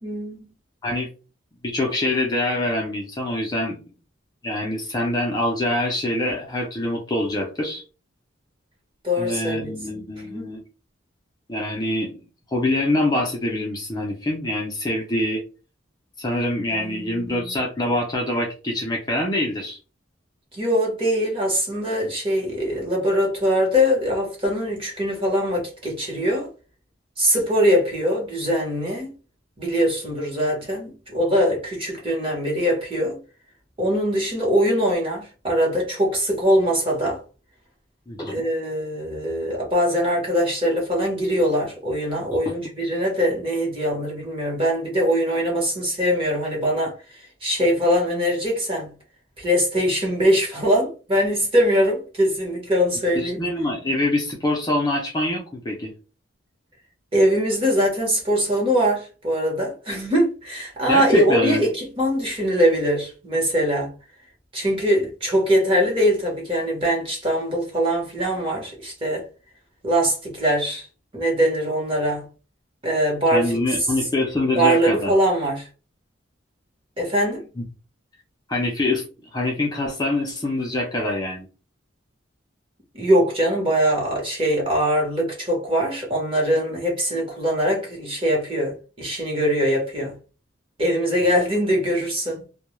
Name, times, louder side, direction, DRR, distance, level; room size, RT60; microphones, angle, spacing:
voice 1, 0.0-0.5 9.0-10.5 16.7-17.5 20.5-26.5 27.2-29.1 29.6-33.2 33.8-37.2 38.3-46.9 47.4-48.9 49.4-53.4 57.1-63.9 64.5-69.2 69.8-70.9 71.1-72.3 72.8-73.6 74.5-75.7 77.0-77.5 82.9-90.1 90.8-92.5, equal, 30° right, 1.0 m, -22 dB
voice 2, 1.6-3.8 4.4-7.8 9.2-10.6 11.5-12.2 12.5-15.4 16.2-19.8 38.1-38.4 42.3-42.5 53.2-55.9 60.9-61.6 73.3-75.1 77.6-77.7 78.5-79.0 79.3-81.5, left 1 dB, 20° left, 0.5 m, -25 dB
2.3 x 2.2 x 2.9 m
head